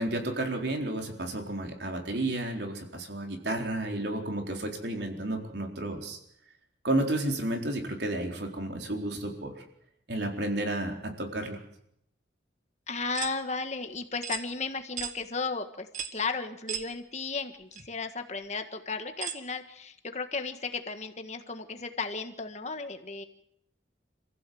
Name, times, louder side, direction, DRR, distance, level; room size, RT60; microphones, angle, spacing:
voice 1, 0.0-6.2 6.8-9.5 10.1-11.6, right 1 dB, 65° right, 2 dB, 4.1 m, -32 dB
voice 2, 12.9-15.9 16.1-23.2, left 4 dB, 35° left, 7 dB, 1.6 m, -34 dB
sound 1, 13.1-13.4 14.2-14.5 15.0-15.2 15.9-16.2 16.7-16.9 17.7-17.8 19.2-19.4, right 8 dB, 45° right, 1.5 m, -35 dB
27.5 x 15.5 x 7.8 m, 0.76 s
head